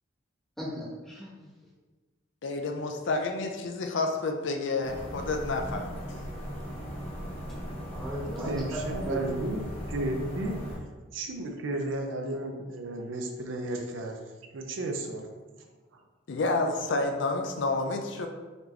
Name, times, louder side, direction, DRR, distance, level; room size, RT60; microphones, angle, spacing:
voice 1, 0.6-1.5 7.9-9.2, equal, ahead, -6 dB, 1.0 m, -37 dB
voice 2, 2.4-6.0 16.3-18.3, left 3 dB, 65° left, 4 dB, 0.5 m, -29 dB
sound 1, 4.8-10.8, equal, 30° left, 0.9 m, -38 dB
voice 3, 8.4-9.6 9.9-10.6 11.1-14.2 14.5-15.3, right 1 dB, 70° right, 3 dB, 0.5 m, -33 dB
4.2 x 2.9 x 3.2 m, 1.3 s
head